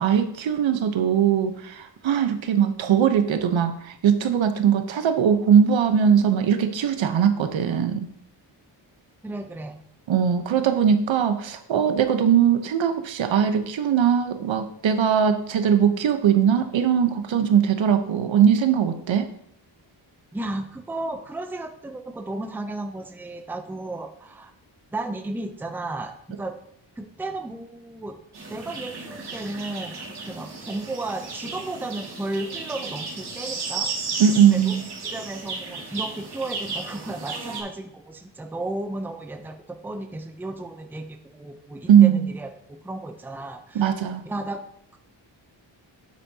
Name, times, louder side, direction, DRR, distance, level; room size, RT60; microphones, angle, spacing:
voice 1, 0.0-8.1 10.1-19.3 34.2-34.8 41.9-42.3 43.7-44.2, right 8 dB, 80° right, 8 dB, 1.0 m, -20 dB
voice 2, 9.2-9.8 20.3-24.5 24.9-26.6 27.0-28.2 28.5-33.9 34.5-34.8 35.1-44.0 44.3-44.6, right 2 dB, 5° right, 6 dB, 0.5 m, -34 dB
sound 1, 28.3-37.6, right 4 dB, 60° right, 2.2 m, -34 dB
9.3 x 8.2 x 2.8 m, 0.72 s
wide cardioid pair, 160°, 45 cm